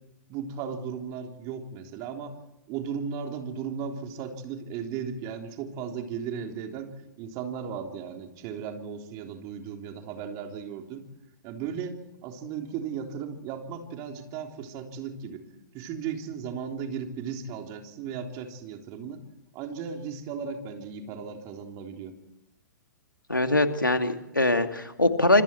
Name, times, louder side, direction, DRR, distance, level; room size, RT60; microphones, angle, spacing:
voice 1, 0.3-2.4 2.7-11.0 11.4-15.4 15.7-19.2 19.5-22.1, right 7 dB, 30° right, 4 dB, 3.5 m, -36 dB
voice 2, 23.3-25.4, left 2 dB, 90° left, 7 dB, 2.5 m, -22 dB
27.0 x 25.5 x 4.5 m, 0.91 s
figure-of-eight pair, 115°, 10 cm